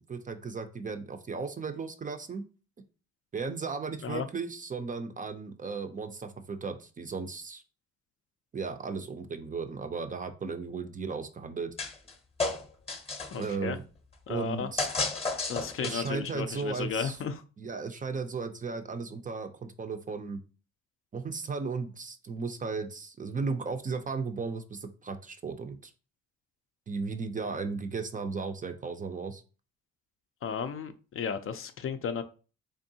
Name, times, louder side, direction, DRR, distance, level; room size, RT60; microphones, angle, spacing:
voice 1, 0.0-2.4 3.3-7.6 8.5-11.7 13.3-13.8 14.3-14.9 15.8-17.2 17.6-20.4 21.1-25.9 26.9-29.4, right 4 dB, 25° right, 7 dB, 0.4 m, -35 dB
sound 1, 11.8-12.1 12.4-13.5 14.8-16.2, left 3 dB, 20° left, 0.7 m, -32 dB
voice 2, 13.3-13.8 14.3-14.7 15.5-17.4 30.4-32.2, left 6 dB, 45° left, 9 dB, 0.4 m, -34 dB
3.6 x 3.4 x 2.7 m, 0.36 s
cardioid pair, 90°, 30 cm